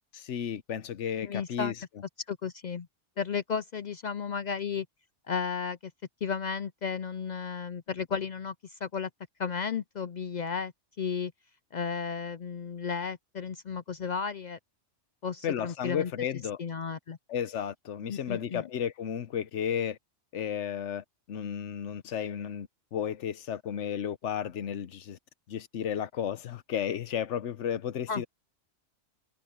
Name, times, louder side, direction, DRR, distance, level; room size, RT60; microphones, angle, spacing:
voice 1, 0.1-1.7 15.4-16.6 17.3-20.0 20.3-25.2 25.5-28.3, left 9 dB, 85° left, 1.1 m, -33 dB
voice 2, 1.2-1.7 2.3-2.9 3.2-4.9 5.3-5.9 6.2-9.1 9.4-10.7 11.0-11.3 11.7-14.6 15.2-16.1 16.6-17.2 18.1-18.7 28.1-28.2, left 6 dB, 55° left, 0.5 m, -33 dB
omnidirectional pair, 1.2 m